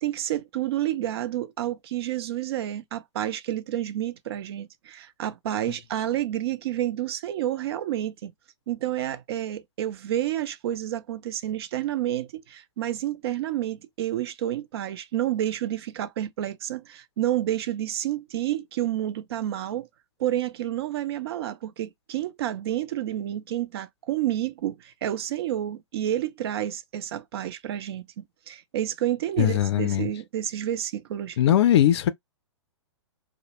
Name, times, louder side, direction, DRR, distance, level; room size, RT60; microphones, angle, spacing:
voice 1, 0.0-8.3 8.7-19.9 20.2-31.4, right 12 dB, 55° right, 0.4 m, -29 dB
voice 2, 29.4-30.1 31.4-32.1, left 11 dB, 60° left, 0.4 m, -20 dB
2.2 x 2.0 x 2.9 m
figure-of-eight pair, 115°, 16 cm